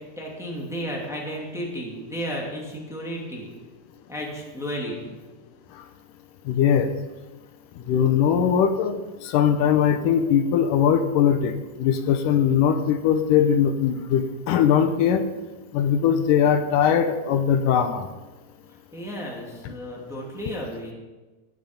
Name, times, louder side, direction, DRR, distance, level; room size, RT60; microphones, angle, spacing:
voice 1, 0.2-3.5 4.1-5.1 18.9-20.9, equal, ahead, -2 dB, 2.1 m, -33 dB
voice 2, 6.5-6.9 7.9-15.2 15.7-18.1 19.6-19.7, left 8 dB, 80° left, 8 dB, 2.4 m, -20 dB
16.0 x 9.5 x 5.2 m, 1.2 s
omnidirectional pair, 3.8 m